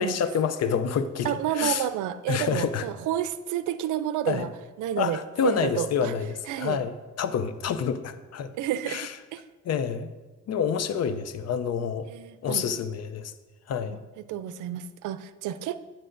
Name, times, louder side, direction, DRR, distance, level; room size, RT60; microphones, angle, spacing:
voice 1, 0.0-1.9 2.3-2.9 4.3-4.5 5.0-8.5 8.9-9.2 9.6-10.1 10.5-12.1 12.4-13.3 13.7-14.0, left 7 dB, 55° left, 12 dB, 0.6 m, -28 dB
voice 2, 1.2-4.5 4.8-6.1 6.5-6.8 8.6-9.4 12.1-12.6 14.3-15.8, right 11 dB, 80° right, 13 dB, 0.5 m, -30 dB
9.7 x 8.9 x 2.6 m, 1.3 s
cardioid pair, 90°, 30 cm